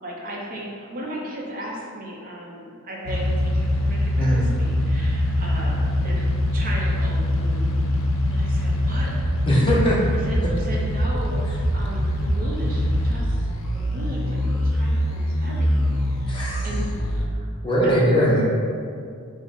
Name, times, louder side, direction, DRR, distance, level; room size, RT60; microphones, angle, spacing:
voice 1, 0.0-7.8 8.3-9.1 10.2-11.4 11.7-13.4 13.7-17.0 17.2-17.5 17.8-18.1, equal, 40° right, -3 dB, 0.6 m, -36 dB
sound 1, 3.1-17.3, left 1 dB, 65° left, 0.5 m, -23 dB
voice 2, 4.2-4.5 9.5-10.0 16.3-16.7 17.6-18.4, equal, 25° left, -5 dB, 0.6 m, -20 dB
5.0 x 2.1 x 3.7 m, 2.2 s
head